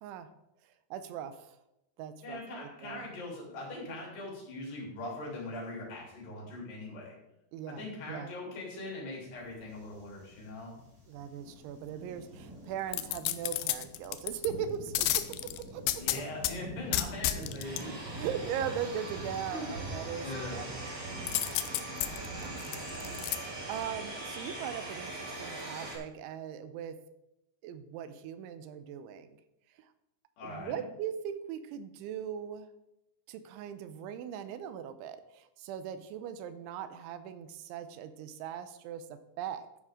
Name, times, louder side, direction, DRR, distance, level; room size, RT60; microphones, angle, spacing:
voice 1, 0.9-1.5 2.0-3.1 7.5-8.3 11.1-16.2 18.1-20.9 21.6-21.7 22.4-22.8 23.0-27.0 27.6-29.3 30.4-32.7 33.3-39.7, right 9 dB, 85° right, 11 dB, 3.1 m, -40 dB
voice 2, 2.2-7.2 7.7-10.8 15.9-17.9 19.5-19.7 20.2-20.7 30.4-30.8, left 2 dB, 60° left, -3 dB, 5.3 m, -41 dB
sound 1, 9.7-24.0, right 1 dB, 65° right, 4.9 m, -46 dB
sound 2, 12.9-14.5 14.9-16.5 16.9-17.8 21.3-23.4 23.8-23.9, left 14 dB, 85° left, 2.4 m, -31 dB
sound 3, 17.6-26.0, right 2 dB, 45° right, 4.7 m, -41 dB
12.5 x 9.8 x 3.7 m, 0.87 s
omnidirectional pair, 5.4 m